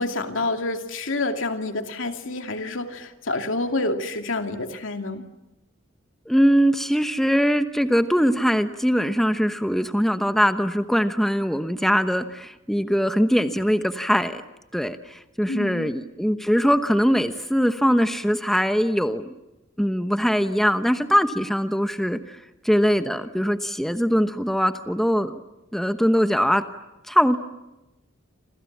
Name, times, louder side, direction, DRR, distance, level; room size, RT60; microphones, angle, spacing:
voice 1, 0.0-5.3 15.5-15.9, left 2 dB, 75° left, 5 dB, 2.6 m, -28 dB
voice 2, 6.3-14.4 14.7-19.3 19.8-22.4 22.6-25.3 25.7-26.6 27.1-27.4, equal, ahead, 8 dB, 1.0 m, -21 dB
28.5 x 27.5 x 7.4 m, 0.98 s
head